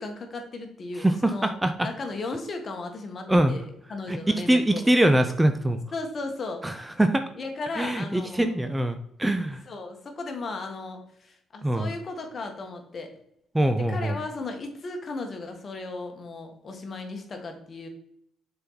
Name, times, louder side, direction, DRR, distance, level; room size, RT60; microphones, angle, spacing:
voice 1, 0.0-1.5 1.8-4.8 5.9-6.6 7.4-8.6 9.6-13.2 13.7-17.9, left 3 dB, 45° left, 4 dB, 1.4 m, -36 dB
voice 2, 1.0-1.9 3.3-3.6 4.1-5.8 6.6-6.7 7.0-7.2 7.8-9.6 11.6-11.9 13.5-14.2, right 1 dB, 10° right, 8 dB, 0.5 m, -23 dB
6.6 x 4.4 x 3.9 m, 0.75 s
cardioid pair, 90°, 0 cm